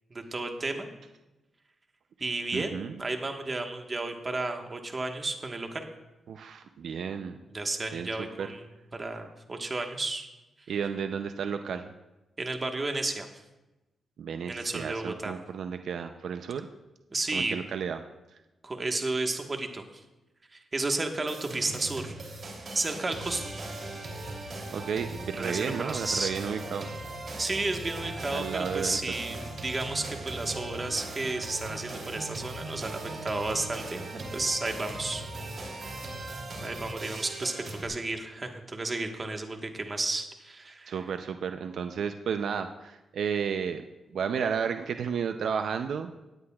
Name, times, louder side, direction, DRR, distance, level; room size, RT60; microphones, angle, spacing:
voice 1, 0.1-0.9 2.2-5.8 7.5-8.6 8.9-10.3 12.4-13.3 14.5-15.3 17.1-17.6 18.6-20.0 20.5-22.1 22.7-23.4 25.4-26.3 27.4-35.2 36.6-41.0, right 2 dB, 30° right, 4 dB, 1.3 m, -32 dB
voice 2, 2.5-3.0 6.3-7.4 7.9-8.1 8.4-8.5 10.7-11.9 14.2-16.7 17.3-18.0 24.7-26.9 28.3-29.2 40.9-43.8 44.1-46.1, right 7 dB, 75° right, 7 dB, 0.5 m, -32 dB
sound 1, 21.3-37.9, right 2 dB, 55° right, 3.1 m, -39 dB
17.0 x 9.6 x 2.4 m, 1.0 s
cardioid pair, 80°, 0 cm